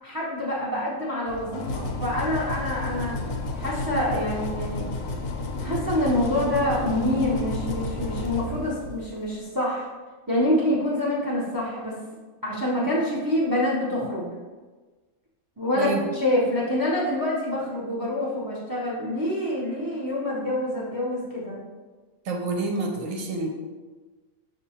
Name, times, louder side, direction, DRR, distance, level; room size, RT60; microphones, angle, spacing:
voice 1, 0.0-3.2 3.5-4.9 5.6-9.9 10.3-12.0 12.4-14.3 15.6-21.6, left 1 dB, 20° right, -5 dB, 0.5 m, -26 dB
sound 1, 1.3-9.2, left 2 dB, 85° left, 1.1 m, -31 dB
voice 2, 22.2-23.5, right 3 dB, 65° right, 1 dB, 1.0 m, -28 dB
6.1 x 2.7 x 2.8 m, 1.3 s
omnidirectional pair, 1.6 m